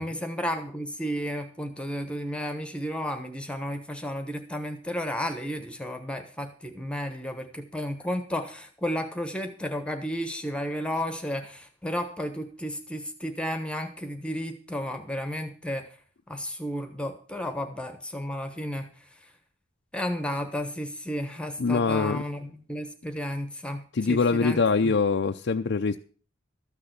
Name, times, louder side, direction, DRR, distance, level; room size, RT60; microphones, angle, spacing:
voice 1, 0.0-15.9 16.3-18.9 19.2-19.3 19.9-24.9, equal, 5° left, 1.1 m, -33 dB
voice 2, 21.6-22.2 23.9-26.0, left 4 dB, 60° left, 0.5 m, -23 dB
13.5 x 6.8 x 8.0 m
head